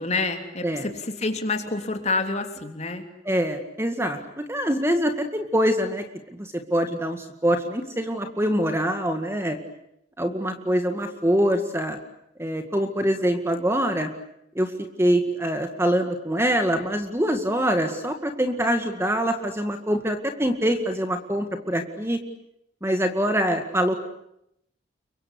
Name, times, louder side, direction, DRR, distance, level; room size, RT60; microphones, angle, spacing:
voice 1, 0.0-3.0, left 3 dB, 35° left, 5 dB, 3.2 m, -28 dB
voice 2, 3.3-6.0 6.3-9.6 10.2-12.0 12.4-14.1 14.6-14.7 15.0-22.2 22.8-24.0, equal, 15° right, 7 dB, 2.0 m, -24 dB
29.5 x 24.0 x 8.3 m, 0.78 s
head